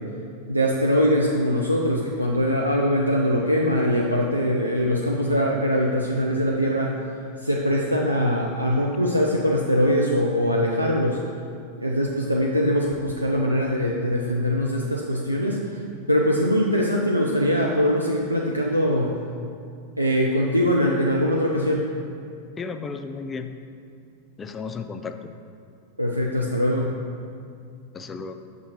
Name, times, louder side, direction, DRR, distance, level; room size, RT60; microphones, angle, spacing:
voice 1, 0.5-7.0 7.4-11.2 11.8-15.8 16.1-19.2 20.0-21.9 26.0-26.9, equal, 90° right, -2 dB, 0.4 m, -22 dB
voice 2, 22.6-23.5 24.4-25.3 27.9-28.3, left 5 dB, 20° left, 8 dB, 0.3 m, -33 dB
5.7 x 3.6 x 5.7 m, 2.4 s
figure-of-eight pair, 90°, 0 cm